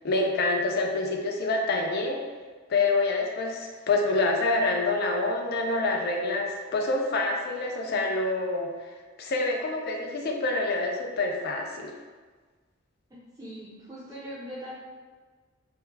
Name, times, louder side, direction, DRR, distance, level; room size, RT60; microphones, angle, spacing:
voice 1, 0.0-2.2 2.7-8.7 9.2-11.9, left 2 dB, 50° left, 2 dB, 0.3 m, -27 dB
voice 2, 13.1-14.8, equal, 20° right, -10 dB, 0.4 m, -41 dB
2.2 x 2.1 x 3.1 m, 1.4 s
head